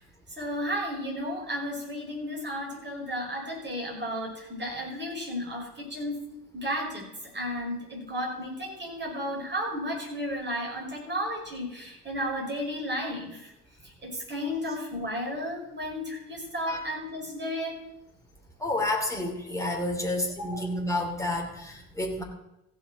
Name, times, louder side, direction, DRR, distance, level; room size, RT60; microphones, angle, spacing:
voice 1, 0.4-6.2 6.5-13.5 13.8-17.8 20.4-20.7, equal, 20° right, -2 dB, 5.2 m, -33 dB
voice 2, 18.6-22.2, left 1 dB, 5° left, 0 dB, 2.9 m, -30 dB
15.0 x 6.4 x 6.1 m, 0.86 s
figure-of-eight pair, 55°, 47 cm